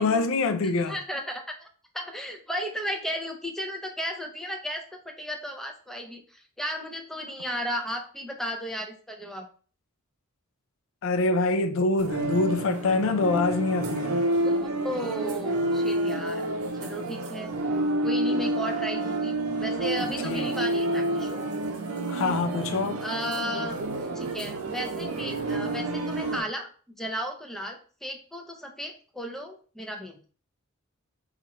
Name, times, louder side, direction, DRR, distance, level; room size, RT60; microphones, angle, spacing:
voice 1, 0.0-1.0 11.0-14.2 20.2-20.5 22.1-23.0, left 3 dB, 65° left, 0.4 m, -25 dB
voice 2, 0.9-1.7 1.9-9.5 14.4-14.6 14.8-16.5 16.8-17.5 18.0-21.4 23.0-23.8 24.1-26.7 27.0-30.2, equal, ahead, 0.5 m, -34 dB
sound 1, 12.0-26.4, right 2 dB, 85° right, 0.6 m, -29 dB
4.3 x 2.4 x 2.9 m
head